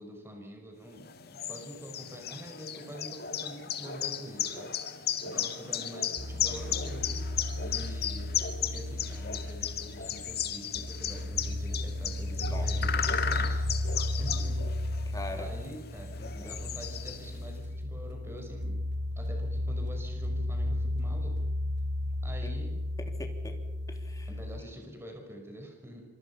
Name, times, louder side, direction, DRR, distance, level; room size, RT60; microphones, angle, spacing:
voice 1, 0.0-7.1 7.6-13.6 14.2-14.6 15.4-18.9 19.2-21.4 22.2-22.9 24.3-26.1, equal, 15° right, 2 dB, 5.5 m, -46 dB
sound 1, 1.0-17.5, left 9 dB, 55° left, 1.9 m, -35 dB
sound 2, 6.2-24.6, left 1 dB, 65° right, 2.5 m, -34 dB
voice 2, 15.1-15.5 16.2-16.6 22.4-22.5 23.0-23.6 23.9-24.3, left 1 dB, 20° left, 4 dB, 3.4 m, -42 dB
27.0 x 25.5 x 5.9 m, 1.1 s
head